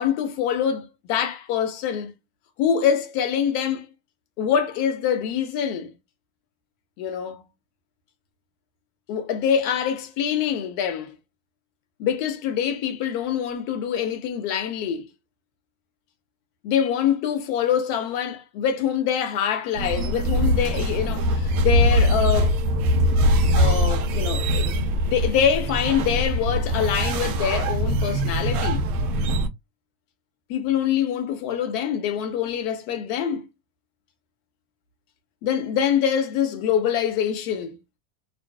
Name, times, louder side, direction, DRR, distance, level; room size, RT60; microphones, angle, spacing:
voice 1, 0.0-2.1 2.6-3.9 4.4-5.9 7.0-7.4 9.1-11.2 12.0-15.1 16.6-22.6 23.5-28.8 30.5-33.4 35.4-37.8, left 8 dB, 50° left, 0.6 m, -25 dB
sound 1, 19.7-29.5, equal, 70° right, 0.7 m, -22 dB
2.5 x 2.2 x 2.2 m
supercardioid pair, 155°, 44 cm